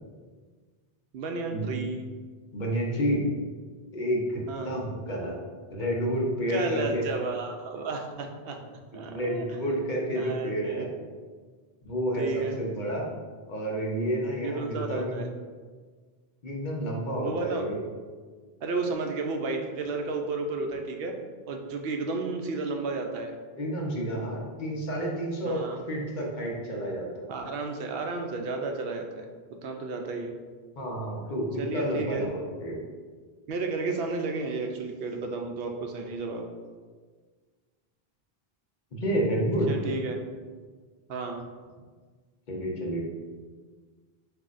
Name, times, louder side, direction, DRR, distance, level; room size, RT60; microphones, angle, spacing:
voice 1, 1.1-2.0 4.5-4.8 6.5-8.6 8.9-9.5 10.1-10.9 12.1-12.6 14.4-15.3 17.2-17.6 18.6-21.1 21.5-23.3 25.4-25.8 27.3-29.3 29.6-30.3 31.6-32.3 33.5-36.5 39.7-40.2 41.1-41.5, right 3 dB, 75° right, 3 dB, 0.8 m, -32 dB
voice 2, 2.5-3.2 3.9-5.3 5.7-7.0 8.9-10.9 11.8-12.3 12.6-13.1 13.5-15.2 16.4-17.8 23.6-27.3 30.8-32.8 38.9-39.7 42.5-43.0, equal, 50° left, -2 dB, 0.9 m, -30 dB
7.8 x 2.7 x 2.5 m, 1.5 s
omnidirectional pair, 1.0 m